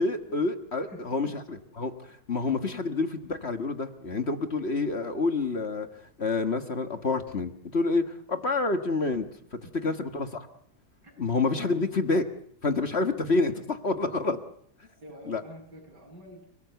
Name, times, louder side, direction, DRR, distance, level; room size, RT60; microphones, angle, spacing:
voice 1, 0.0-5.9 6.2-9.3 9.5-10.3 11.2-12.2 12.6-14.4 15.3-15.4, left 3 dB, 40° left, 7 dB, 1.7 m, -28 dB
voice 2, 0.9-1.3 9.6-9.7 11.0-11.2 11.5-11.8 14.9-16.6, equal, 80° right, 2 dB, 8.4 m, -48 dB
29.5 x 18.0 x 8.2 m, 0.69 s
omnidirectional pair, 1.8 m